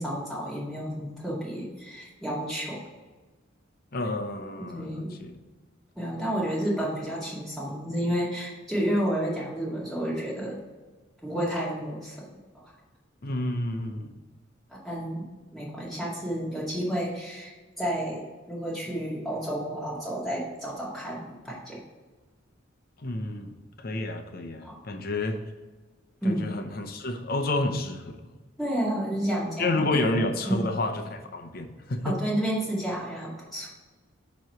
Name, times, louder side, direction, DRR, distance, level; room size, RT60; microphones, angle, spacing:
voice 1, 0.0-2.8 4.6-5.1 6.0-10.6 11.2-12.3 12.5-12.6 14.7-15.3 15.5-17.5 17.8-21.8 24.6-24.8 26.2-26.5 28.6-30.0 30.5-30.6 32.0-33.7, equal, ahead, -7 dB, 2.1 m, -31 dB
voice 2, 3.9-5.3 13.2-14.1 23.0-25.4 26.2-28.2 29.6-32.2, left 2 dB, 50° left, 6 dB, 0.7 m, -30 dB
7.7 x 3.1 x 5.6 m, 1.3 s
head